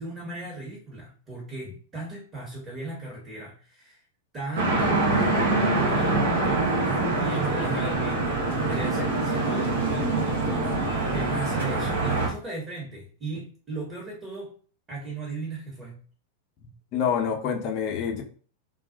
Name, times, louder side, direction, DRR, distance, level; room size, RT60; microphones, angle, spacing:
voice 1, 0.0-4.0 4.3-14.5 14.9-16.0, right 2 dB, 25° right, -4 dB, 1.0 m, -37 dB
sound 1, 4.6-12.3, right 2 dB, 70° right, 0.8 m, -24 dB
voice 2, 16.9-18.2, left 7 dB, 45° left, 2 dB, 0.6 m, -26 dB
2.3 x 2.0 x 2.6 m, 0.42 s
figure-of-eight pair, 95°, 0 cm